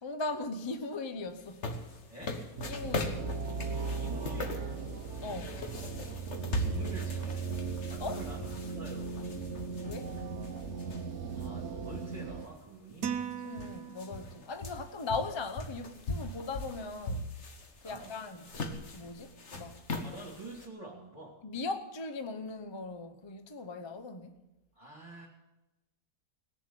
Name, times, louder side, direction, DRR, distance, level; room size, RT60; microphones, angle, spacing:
voice 1, 0.0-1.7 2.6-3.3 5.2-5.5 8.0-8.2 9.9-10.1 13.4-17.3 17.8-18.6 18.9-19.8 21.4-24.4, left 3 dB, 25° left, 0.7 m, -39 dB
sound 1, 1.4-11.5 11.9-12.0 12.9-13.0 13.2-20.7, left 2 dB, 50° left, 1.5 m, -40 dB
voice 2, 2.1-2.4 3.9-4.8 6.4-7.5 7.9-9.3 11.3-13.2 17.8-18.2 20.0-21.4 24.7-25.3, right 2 dB, 20° right, 2.8 m, -47 dB
sound 2, 2.6-12.5, right 4 dB, 55° right, 1.2 m, -37 dB
sound 3, 13.0-14.5, right 8 dB, 75° right, 1.4 m, -38 dB
19.0 x 7.2 x 9.0 m
omnidirectional pair, 1.6 m